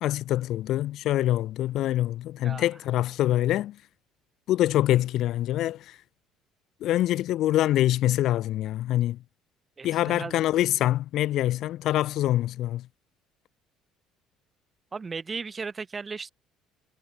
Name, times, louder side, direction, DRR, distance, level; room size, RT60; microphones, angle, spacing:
voice 1, 0.0-3.8 4.5-6.0 6.8-9.2 9.8-12.9, left 14 dB, 55° left, 0.5 m, -25 dB
voice 2, 9.8-10.4 14.9-16.3, right 4 dB, 20° right, 0.5 m, -36 dB
cardioid pair, 160°, 0 cm